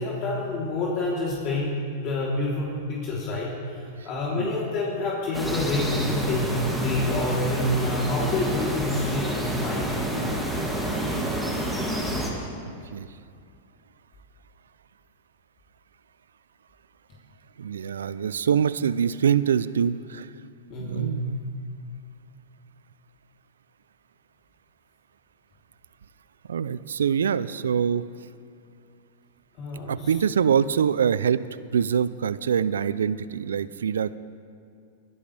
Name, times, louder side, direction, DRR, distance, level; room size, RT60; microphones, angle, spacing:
voice 1, 0.0-1.7 2.0-6.5 6.8-10.1 20.7-21.2 29.6-30.1, left 2 dB, 45° left, -6 dB, 3.3 m, -28 dB
sound 1, 5.3-12.3, right 1 dB, 5° right, 2.5 m, -28 dB
voice 2, 11.0-11.4 12.0-12.2 12.9-13.1 17.6-20.3 20.8-21.4 26.5-28.1 29.9-31.4 31.7-34.2, right 7 dB, 85° right, 17 dB, 0.4 m, -24 dB
23.0 x 11.5 x 3.4 m, 2.3 s
hypercardioid pair, 110°, 0 cm